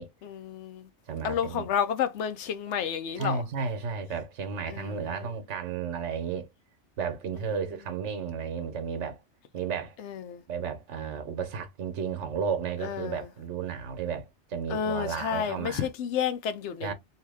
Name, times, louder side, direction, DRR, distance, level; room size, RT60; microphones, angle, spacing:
voice 1, 0.2-0.9 1.2-3.4 4.7-5.0 10.0-10.4 12.8-13.3 14.7-16.9, left 8 dB, 75° left, 0.9 m, -31 dB
voice 2, 1.1-1.7 3.2-6.5 7.0-9.2 9.5-10.0 10.5-15.9 16.8-16.9, right 6 dB, 80° right, 1.1 m, -33 dB
2.9 x 2.8 x 3.3 m
omnidirectional pair, 1.2 m